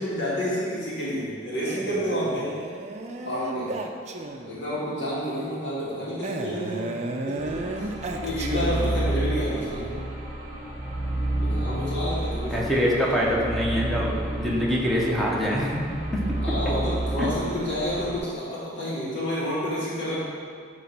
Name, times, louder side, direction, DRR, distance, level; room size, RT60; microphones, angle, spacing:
voice 1, 0.0-2.5 3.2-3.7 4.4-6.9 7.3-7.9 8.2-10.0 11.4-13.2 16.4-20.2, equal, 70° left, -9 dB, 1.8 m, -29 dB
Male speech man speaking, 1.7-4.7 6.2-9.2, right 2 dB, 40° right, 0.5 m, -33 dB
sound 1, 7.4-18.2, right 1 dB, 20° right, 1.4 m, -30 dB
voice 2, 12.5-14.1 14.4-15.8 17.2-17.3, equal, ahead, -5 dB, 1.0 m, -24 dB
9.2 x 3.1 x 5.8 m, 2.1 s
head